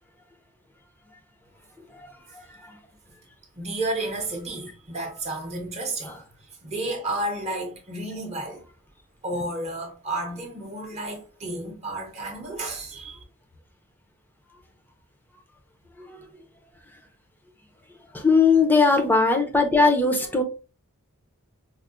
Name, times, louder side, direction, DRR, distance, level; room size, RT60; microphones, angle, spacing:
voice 1, 3.6-6.2 6.6-8.6 9.2-13.2, right 1 dB, 30° right, 0.6 m, -31 dB
voice 2, 18.2-20.4, left 4 dB, 10° left, 0.5 m, -19 dB
4.6 x 2.0 x 2.4 m
head